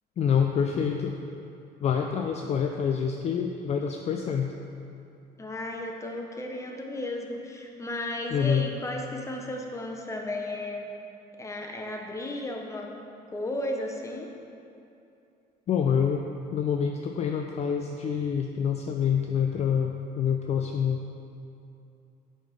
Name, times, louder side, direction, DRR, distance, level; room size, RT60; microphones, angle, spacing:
voice 1, 0.2-1.1 1.8-4.5 8.3-8.6 15.7-16.2 16.5-21.0, left 7 dB, 40° left, 3 dB, 0.4 m, -26 dB
voice 2, 5.4-10.9 11.4-12.9 13.3-14.3, left 1 dB, 15° left, 1 dB, 0.8 m, -34 dB
6.1 x 4.3 x 5.1 m, 2.7 s
cardioid pair, 110°, 17 cm